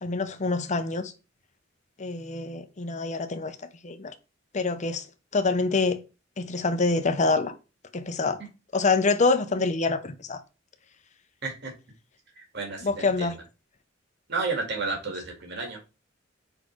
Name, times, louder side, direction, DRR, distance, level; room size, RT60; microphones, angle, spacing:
voice 1, 0.0-1.1 2.0-3.6 3.8-4.1 4.5-5.0 5.3-6.0 6.4-7.5 7.9-8.4 8.7-10.4 12.8-13.3, left 3 dB, 35° left, 0.7 m, -26 dB
voice 2, 11.4-11.7 12.4-13.3 14.3-15.9, right 3 dB, 60° right, 2.2 m, -32 dB
5.5 x 4.3 x 4.5 m
head